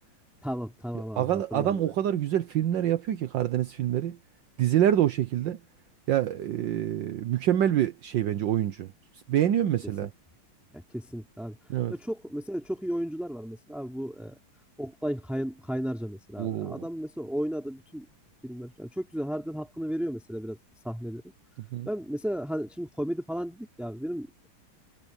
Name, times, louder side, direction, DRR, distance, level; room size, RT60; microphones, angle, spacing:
voice 1, 0.4-1.9 10.7-11.6 11.9-14.4 14.8-18.0 18.4-20.6 20.8-21.3 21.9-24.3, equal, ahead, 2.6 m, -34 dB
voice 2, 1.2-4.2 4.6-5.6 6.1-8.9 9.3-10.1 11.7-11.9 16.4-16.8 21.7-21.9, right 11 dB, 70° right, 1.5 m, -26 dB
omnidirectional pair, 2.3 m